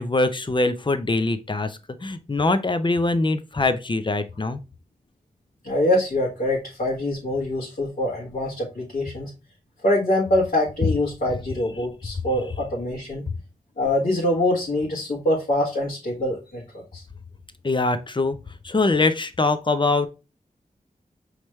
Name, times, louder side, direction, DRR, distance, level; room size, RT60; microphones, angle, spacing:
voice 1, 0.0-4.6 17.6-18.4 18.6-20.1, left 2 dB, 35° left, 0.6 m, -23 dB
voice 2, 5.6-9.3 9.8-13.2 13.8-16.6 16.9-17.0, left 1 dB, 75° left, 1.5 m, -24 dB
5.1 x 3.2 x 3.1 m
wide cardioid pair, 75°, 15 cm